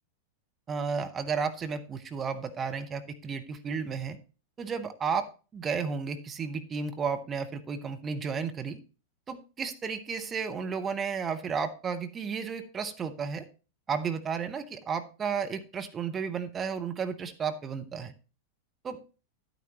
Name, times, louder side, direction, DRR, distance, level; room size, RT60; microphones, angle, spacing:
voice 1, 0.7-4.2 4.6-5.3 5.5-8.8 9.3-13.5 13.9-18.1 18.8-19.0, right 6 dB, 20° right, 7 dB, 1.0 m, -33 dB
11.0 x 9.4 x 3.0 m, 0.34 s
figure-of-eight pair, 90°, 0 cm